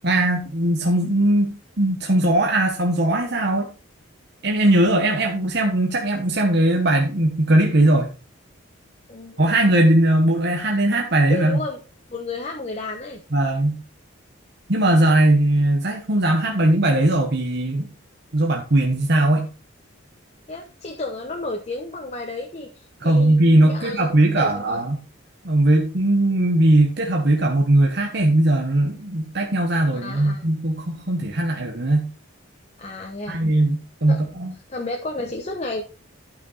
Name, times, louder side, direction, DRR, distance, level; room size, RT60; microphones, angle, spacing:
voice 1, 0.0-3.7 4.4-8.1 9.4-11.6 13.3-13.8 14.7-17.9 18.3-19.5 23.0-25.0 25.4-32.1 33.3-34.5, right 1 dB, 55° right, 1 dB, 1.3 m, -19 dB
voice 2, 11.3-11.8 12.1-13.2 20.5-24.8 29.9-30.4 32.8-33.4 34.1-34.2 34.7-35.8, left 2 dB, 35° left, 2 dB, 1.0 m, -32 dB
12.0 x 6.0 x 4.1 m, 0.34 s
head